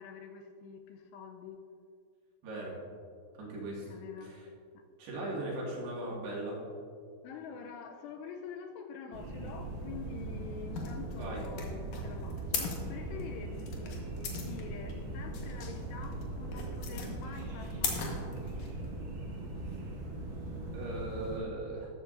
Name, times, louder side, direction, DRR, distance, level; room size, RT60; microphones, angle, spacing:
voice 1, 0.0-1.6 3.9-4.3 4.7-4.8 7.2-14.0 14.3-18.2, left 6 dB, 80° left, 4 dB, 2.6 m, -46 dB
voice 2, 2.4-2.8 3.4-3.9 4.2-4.5 5.0-6.6 11.2-11.4 19.7-19.8 20.7-21.9, right 1 dB, 70° right, -4 dB, 3.9 m, -38 dB
sound 1, 9.1-21.4, right 2 dB, 50° right, 3.4 m, -40 dB
sound 2, 10.7-18.9, left 5 dB, 65° left, 2.1 m, -39 dB
13.5 x 12.0 x 2.6 m, 2.3 s
omnidirectional pair, 5.1 m